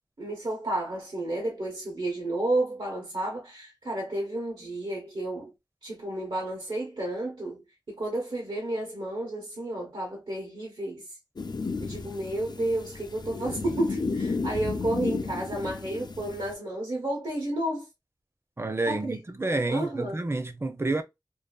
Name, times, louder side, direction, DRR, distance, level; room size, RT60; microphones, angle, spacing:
voice 1, 0.2-5.5 5.8-11.1 11.8-17.9 18.9-19.2 19.5-20.2, right 1 dB, 90° right, 0.9 m, -31 dB
sound 1, 11.4-16.5, left 4 dB, 60° left, 0.3 m, -33 dB
voice 2, 18.6-21.0, right 2 dB, 30° right, 0.5 m, -29 dB
2.6 x 2.3 x 2.2 m
wide cardioid pair, 50°, 8 cm